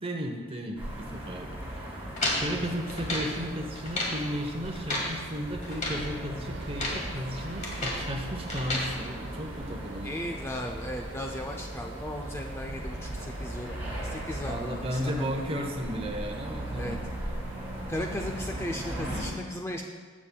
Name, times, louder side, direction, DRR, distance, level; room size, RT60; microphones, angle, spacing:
voice 1, 0.0-1.8 2.4-10.3 14.4-17.0, equal, 30° right, 3 dB, 0.9 m, -34 dB
sound 1, 0.8-19.2, right 1 dB, 10° right, 2.3 m, -39 dB
sound 2, 2.2-3.3 3.7-4.2 4.6-5.1 5.6-6.0 6.6-7.0 7.4-8.1 8.5-8.9, left 1 dB, 40° left, 1.6 m, -32 dB
sound 3, 6.4-18.7, right 2 dB, 70° right, 0.8 m, -44 dB
voice 2, 10.0-13.8 14.0-15.4 16.7-17.0 17.9-19.8, left 1 dB, 15° left, 1 dB, 0.4 m, -36 dB
13.5 x 7.2 x 2.3 m, 1.5 s
head